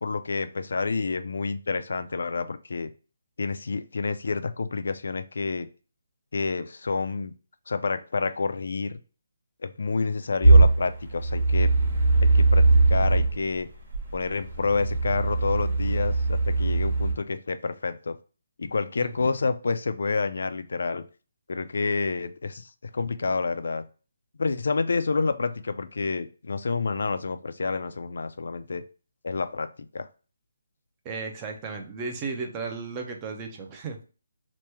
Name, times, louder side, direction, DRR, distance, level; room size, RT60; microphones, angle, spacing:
voice 1, 0.0-2.9 3.4-5.7 6.3-7.3 7.7-9.0 9.6-11.7 12.2-13.7 14.1-18.2 18.6-21.0 21.5-22.7 22.9-23.8 24.4-28.8 29.2-30.1, left 4 dB, 65° left, 10 dB, 0.3 m, -29 dB
sound 1, 10.4-13.3 13.9-17.1, right 2 dB, 30° right, 1.0 m, -20 dB
voice 2, 31.0-34.0, right 4 dB, 15° right, 3 dB, 0.4 m, -34 dB
2.9 x 2.2 x 3.3 m, 0.35 s
hypercardioid pair, 175°, 0 cm